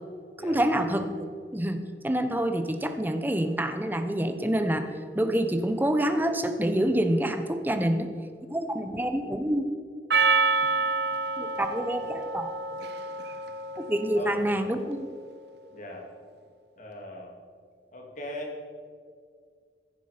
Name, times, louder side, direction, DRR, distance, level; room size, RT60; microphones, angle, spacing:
voice 1, 0.4-8.1 8.5-9.7 11.4-12.5 13.8-15.1, right 1 dB, 10° right, 8 dB, 0.9 m, -27 dB
Percussion, 10.1-14.7, right 4 dB, 65° right, 0.7 m, -28 dB
voice 2, 15.7-16.0 16.8-17.3 17.9-18.6, left 1 dB, 45° left, 0 dB, 2.6 m, -39 dB
15.5 x 10.0 x 5.1 m, 2.1 s
head